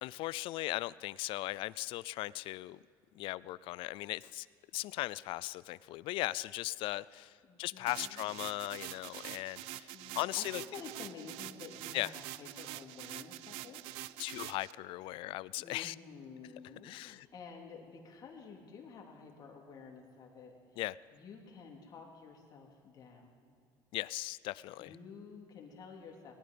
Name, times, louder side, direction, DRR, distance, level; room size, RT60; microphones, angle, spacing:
voice 1, 0.0-2.8 3.2-4.5 4.7-7.3 7.6-10.6 11.9-12.1 14.2-15.9 16.8-17.3 20.8-21.0 23.9-24.9, left 18 dB, 65° left, 20 dB, 0.4 m, -38 dB
voice 2, 7.4-8.3 9.7-13.8 15.6-20.8 21.1-23.5 24.8-26.3, left 5 dB, 45° left, 0 dB, 2.5 m, -51 dB
sound 1, 7.9-14.7, right 16 dB, 75° right, 0.4 m, -46 dB
19.5 x 11.5 x 5.1 m, 2.3 s
cardioid pair, 120°, 10 cm